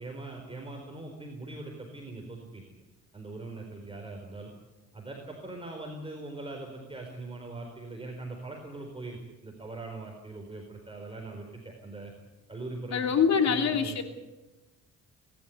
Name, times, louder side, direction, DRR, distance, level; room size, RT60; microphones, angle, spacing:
voice 1, 0.0-2.8 3.1-4.5 4.9-12.1 12.5-13.0 13.4-14.0, right 2 dB, 20° right, 1 dB, 4.3 m, -41 dB
voice 2, 12.9-14.0, left 6 dB, 65° left, 6 dB, 3.0 m, -24 dB
26.5 x 12.5 x 9.6 m, 1.0 s
cardioid pair, 90°, 30 cm